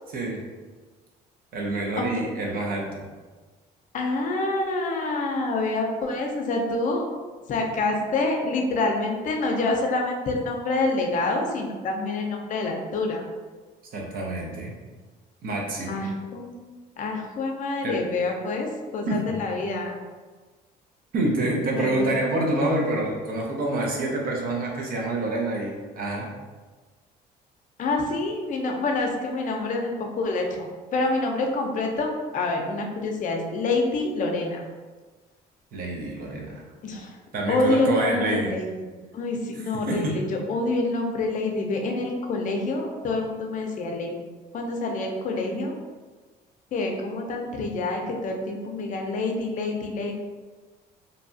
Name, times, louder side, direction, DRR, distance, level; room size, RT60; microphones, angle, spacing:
voice 1, 1.5-3.0 13.9-14.7 15.4-16.1 17.8-17.9 19.1-19.2 21.1-26.3 35.7-36.6 37.3-38.5 39.9-40.1, right 2 dB, 60° right, -1 dB, 0.7 m, -27 dB
voice 2, 3.9-7.1 7.5-13.2 15.9-16.6 17.0-20.0 21.8-22.1 27.8-34.6 36.8-37.2 37.5-38.9 39.1-44.1 44.5-45.8 46.7-50.2, left 2 dB, 50° left, 2 dB, 0.5 m, -27 dB
2.7 x 2.3 x 2.6 m, 1.3 s
cardioid pair, 110°, 17 cm